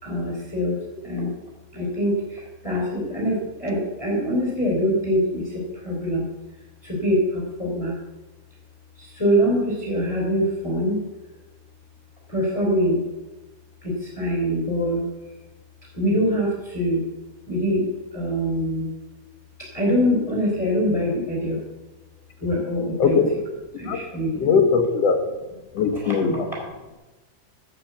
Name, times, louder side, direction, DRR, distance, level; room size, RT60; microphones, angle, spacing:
voice 1, 0.0-1.3 1.7-6.3 6.8-8.0 9.0-11.0 12.3-13.0 13.8-15.0 15.9-17.0 17.5-18.9 19.6-21.6 22.4-23.2 23.8-24.5 25.9-26.1 26.5-26.6, equal, 10° left, -3 dB, 3.7 m, -24 dB
voice 2, 23.0-23.3 23.9-24.0 24.4-25.2 25.7-26.5, left 5 dB, 60° left, 6 dB, 1.9 m, -20 dB
12.0 x 7.6 x 7.9 m, 1.1 s
omnidirectional pair, 3.8 m